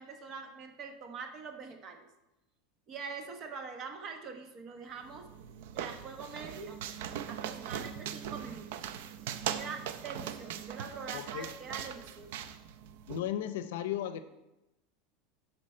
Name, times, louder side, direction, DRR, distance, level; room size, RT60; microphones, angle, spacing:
voice 1, 0.0-2.1 2.9-5.3 5.7-6.8 7.3-8.8 9.5-12.3, right 5 dB, 30° right, 5 dB, 1.0 m, -44 dB
sound 1, 5.0-13.2, right 9 dB, 70° right, 0.5 m, -40 dB
voice 2, 11.1-11.5 13.1-14.2, left 11 dB, 80° left, 12 dB, 0.6 m, -35 dB
12.0 x 4.4 x 4.4 m, 0.95 s
supercardioid pair, 160°, 0 cm